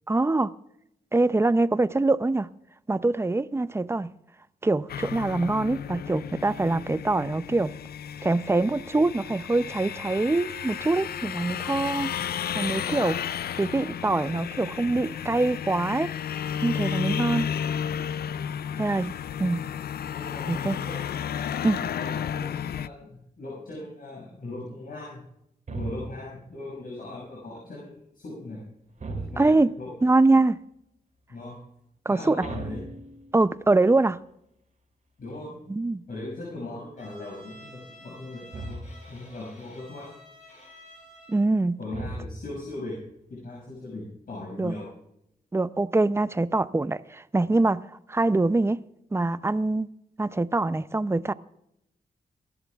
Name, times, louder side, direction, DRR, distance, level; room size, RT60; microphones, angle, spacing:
voice 1, 0.1-0.5 1.1-2.5 2.9-4.1 4.6-7.7 8.2-12.1 12.5-13.2 13.6-16.1 16.6-17.5 18.8-19.1 19.4-19.6 20.5-20.8 21.6-21.8 29.4-29.7 30.0-30.6 32.1-32.5 33.3-34.2 35.7-36.0 41.3-41.8 44.6-44.7 45.5-47.8 48.1-48.8 49.1-49.9 50.2-51.3, right 2 dB, 15° right, 0.5 m, -24 dB
sound 1, 4.9-22.9, left 8 dB, 85° left, 0.4 m, -33 dB
voice 2, 20.1-21.0 21.7-25.2 25.7-28.6 29.1-29.9 31.3-31.6 32.1-32.9 35.2-35.5 36.1-38.8 39.1-40.1 41.8-43.0 43.3-44.9, left 2 dB, 65° left, 6.5 m, -39 dB
sound 2, 25.7-26.4 29.0-29.8 32.4-33.6 38.5-39.2 41.9-42.7, right 2 dB, 55° right, 2.9 m, -37 dB
Bowed string instrument, 37.0-41.5, equal, 50° left, 6.2 m, -51 dB
28.5 x 11.5 x 2.4 m
wide cardioid pair, 90°, 16 cm